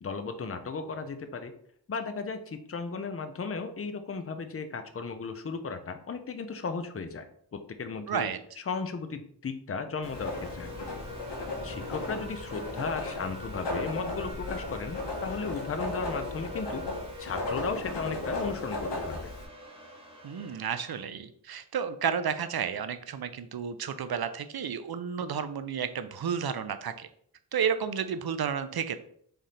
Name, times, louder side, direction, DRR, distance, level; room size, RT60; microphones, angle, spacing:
voice 1, 0.0-1.5 1.9-8.3 8.7-10.9 11.6-16.8 17.2-19.3, left 4 dB, 35° left, 9 dB, 0.5 m, -35 dB
voice 2, 8.1-8.4 20.2-27.1 27.5-29.0, right 7 dB, 65° right, 11 dB, 0.5 m, -31 dB
Writing, 10.0-19.4, left 2 dB, 90° left, 1.2 m, -36 dB
sound 1, 10.1-21.0, equal, 15° right, 1.4 m, -45 dB
3.7 x 3.4 x 4.2 m, 0.64 s
wide cardioid pair, 75°, 41 cm